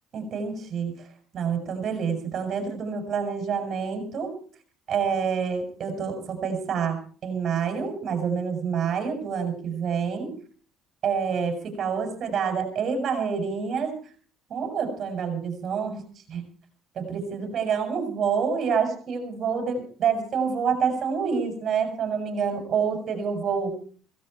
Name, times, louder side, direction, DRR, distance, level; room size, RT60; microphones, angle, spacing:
voice 1, 0.1-0.9 1.3-4.3 4.9-10.3 11.0-13.9 14.5-16.0 16.3-16.4 17.0-23.8, right 6 dB, 50° right, 5 dB, 7.1 m, -27 dB
17.5 x 16.0 x 4.6 m, 0.44 s
supercardioid pair, 95°, 0 cm